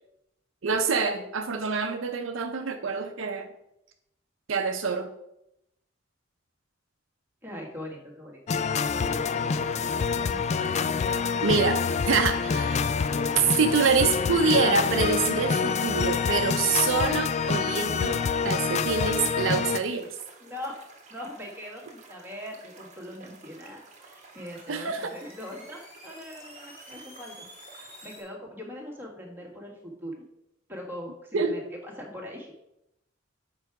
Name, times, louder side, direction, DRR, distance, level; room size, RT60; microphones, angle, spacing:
voice 1, 0.6-3.5 4.5-5.1 11.4-11.8 12.1-13.0 13.4-20.1 24.7-25.1 31.3-31.5, right 5 dB, 70° right, 6 dB, 0.6 m, -26 dB
voice 2, 7.4-8.4 8.7-11.1 20.4-20.8 21.1-30.2 30.7-32.5, left 1 dB, 10° right, -2 dB, 1.8 m, -42 dB
sound 1, 8.5-19.8, left 5 dB, 35° left, 0.3 m, -26 dB
sound 2, 9.1-28.2, right 3 dB, 35° right, 1.3 m, -50 dB
sound 3, 23.4-28.3, equal, 10° left, 1.9 m, -51 dB
6.8 x 4.8 x 4.7 m, 0.82 s
head